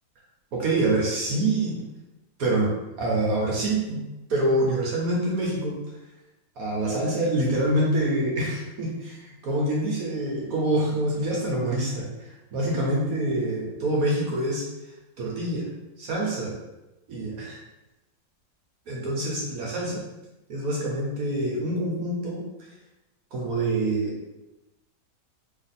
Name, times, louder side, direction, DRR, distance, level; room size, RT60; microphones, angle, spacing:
voice 1, 0.5-1.8 2.4-2.7 3.0-4.0 4.3-5.8 6.6-12.0 12.5-14.6 15.2-15.7 16.0-16.5 17.1-17.6 18.9-20.0 20.5-22.4 23.3-24.1, right 1 dB, 60° right, -4 dB, 1.1 m, -26 dB
3.2 x 2.5 x 4.1 m, 1.0 s
omnidirectional pair, 2.0 m